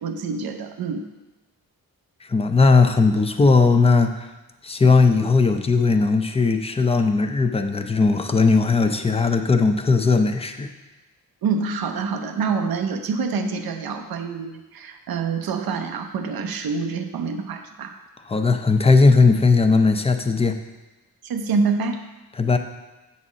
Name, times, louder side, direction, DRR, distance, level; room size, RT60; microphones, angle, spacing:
voice 1, 0.0-1.1 11.4-17.9 21.2-22.0, right 5 dB, 80° right, 6 dB, 0.8 m, -26 dB
voice 2, 2.2-4.3 4.6-10.7 18.3-20.6 22.4-22.6, left 4 dB, 15° left, 7 dB, 0.5 m, -18 dB
8.3 x 4.2 x 6.2 m, 1.1 s
wide cardioid pair, 130°, 35 cm